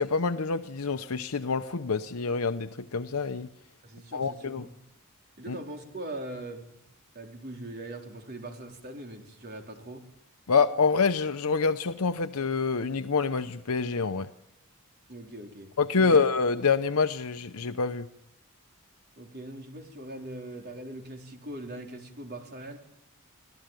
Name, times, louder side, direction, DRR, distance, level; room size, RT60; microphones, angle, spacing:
voice 1, 0.0-3.5 4.1-4.7 5.5-5.6 10.5-14.3 15.8-18.1, left 4 dB, 75° left, 9 dB, 0.8 m, -26 dB
voice 2, 3.8-4.7 5.4-6.8 7.1-10.0 15.1-16.2 19.2-22.8, right 1 dB, 45° right, 3 dB, 4.2 m, -41 dB
26.0 x 16.0 x 9.1 m, 0.80 s
head